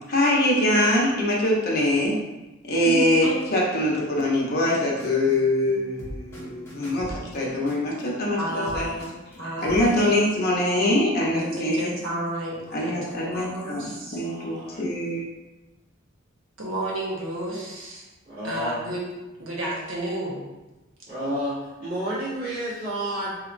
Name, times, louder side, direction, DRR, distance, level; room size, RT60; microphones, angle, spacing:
voice 1, 0.1-2.1 2.7-8.9 9.6-11.9 12.7-15.2, left 1 dB, 50° left, -4 dB, 0.8 m, -23 dB
Happy Commercial Music, 4.6-9.9, right 1 dB, 10° left, 0.9 m, -40 dB
voice 2, 8.4-9.0 9.4-10.1 11.2-14.2 16.6-18.1 18.4-19.0 19.4-20.4, right 1 dB, 70° right, -5 dB, 1.1 m, -31 dB
voice 3, 14.2-14.8 18.2-18.8 21.1-23.4, equal, 45° right, -12 dB, 1.2 m, -31 dB
4.3 x 2.9 x 2.5 m, 1.0 s
head